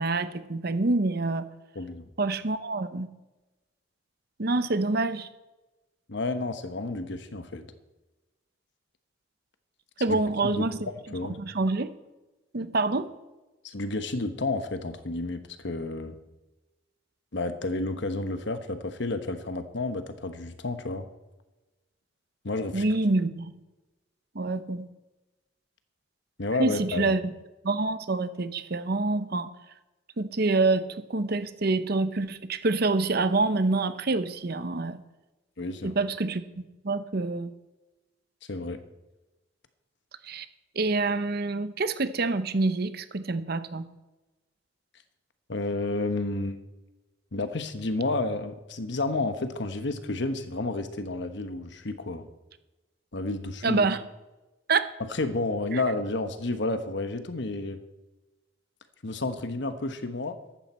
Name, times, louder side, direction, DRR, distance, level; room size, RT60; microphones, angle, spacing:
voice 1, 0.0-1.5 2.2-3.1 4.4-5.3 10.0-10.9 11.4-11.9 12.5-13.1 22.7-23.5 24.3-24.9 26.6-27.3 27.6-29.5 30.2-35.0 35.8-36.4 36.8-37.5 40.2-40.5 40.8-43.9 53.6-54.0 54.7-54.9 55.7-55.8, right 3 dB, 50° right, 11 dB, 0.8 m, -26 dB
voice 2, 6.1-7.7 10.1-10.7 11.1-11.4 13.6-16.2 17.3-21.1 22.4-22.8 26.4-27.1 35.6-35.9 38.5-38.8 45.5-46.6 47.3-52.3 53.1-53.8 55.0-57.8 59.0-60.4, left 2 dB, 60° left, 9 dB, 1.1 m, -31 dB
14.5 x 11.5 x 4.3 m, 1.1 s
head